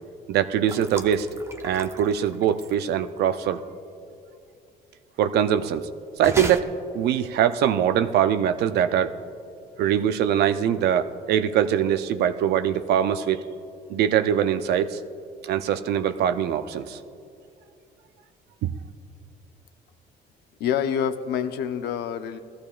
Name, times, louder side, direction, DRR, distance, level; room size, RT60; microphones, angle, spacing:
voice 1, 0.3-1.3 1.6-3.6 5.2-5.9 6.2-6.7 6.9-9.1 9.8-13.4 13.9-15.0 15.4-17.0 18.6-18.7, right 9 dB, 75° right, 10 dB, 0.6 m, -22 dB
sound 1, 0.7-2.9 6.2-6.6, right 2 dB, 15° right, 0.7 m, -35 dB
voice 2, 20.6-22.4, left 8 dB, 75° left, 10 dB, 0.7 m, -26 dB
19.5 x 14.5 x 2.5 m, 2.6 s
cardioid pair, 110°, 17 cm